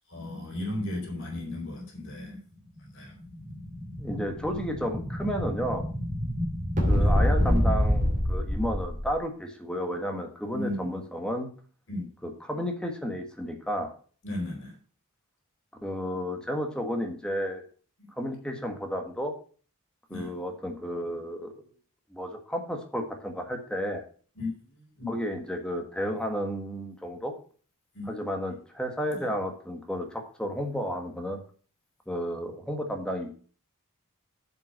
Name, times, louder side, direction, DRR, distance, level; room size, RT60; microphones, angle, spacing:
voice 1, 0.1-2.4 2.9-3.1 7.0-7.1 10.5-10.9 11.9-12.1 14.2-14.8 18.0-18.1 20.1-20.3 24.3-25.1 27.9-28.1 29.1-29.3, left 1 dB, 60° left, 1 dB, 4.0 m, -35 dB
Explosion, 3.0-9.1, equal, 35° right, 2.7 m, -26 dB
voice 2, 4.0-5.8 6.9-11.5 12.2-13.9 15.8-17.6 18.2-19.3 20.1-21.6 22.1-24.0 25.1-27.3 28.1-31.4 32.1-33.3, equal, 5° left, 3 dB, 1.6 m, -32 dB
7.9 x 6.0 x 6.5 m, 0.42 s
head